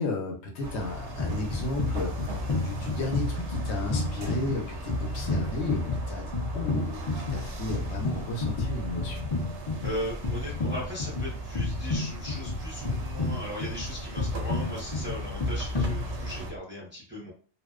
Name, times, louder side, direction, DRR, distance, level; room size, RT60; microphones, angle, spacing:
voice 1, 0.0-6.3 6.5-9.3, left 2 dB, 70° left, 2 dB, 0.8 m, -34 dB
sound 1, 0.6-16.5, right 1 dB, 70° right, 0.8 m, -39 dB
sound 2, 1.2-16.6, left 2 dB, 55° left, 0.3 m, -31 dB
voice 2, 9.8-17.3, equal, 15° right, -5 dB, 0.6 m, -38 dB
2.6 x 2.0 x 2.3 m, 0.40 s
omnidirectional pair, 1.3 m